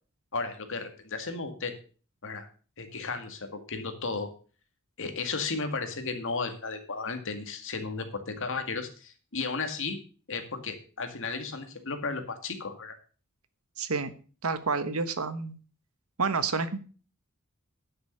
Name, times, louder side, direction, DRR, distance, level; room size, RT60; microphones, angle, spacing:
voice 1, 0.3-1.7 2.2-2.5 2.8-4.3 5.0-10.0 10.3-12.9, left 4 dB, 60° left, 6 dB, 2.1 m, -34 dB
voice 2, 13.8-14.1 14.4-15.6 16.2-16.8, right 4 dB, 75° right, 12 dB, 1.2 m, -29 dB
11.0 x 6.5 x 6.7 m, 0.38 s
head